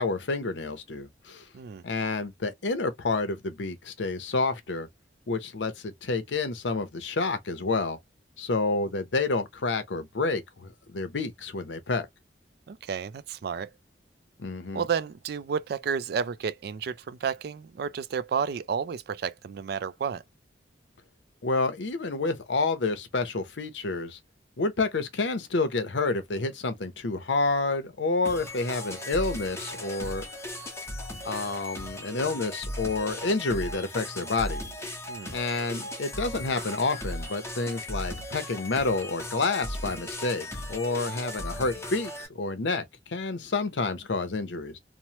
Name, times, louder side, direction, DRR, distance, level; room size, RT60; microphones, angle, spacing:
voice 1, 0.0-1.4 1.8-4.9 5.3-8.0 8.4-12.1 14.4-14.8 21.4-24.2 24.6-30.2 31.2-34.9 35.3-44.8, left 3 dB, 85° left, 0.7 m, -29 dB
voice 2, 12.7-13.7 14.7-20.2 35.1-35.3, right 6 dB, 60° right, 0.3 m, -31 dB
sound 1, 28.2-42.3, left 1 dB, 15° left, 0.9 m, -37 dB
3.0 x 2.0 x 2.8 m
head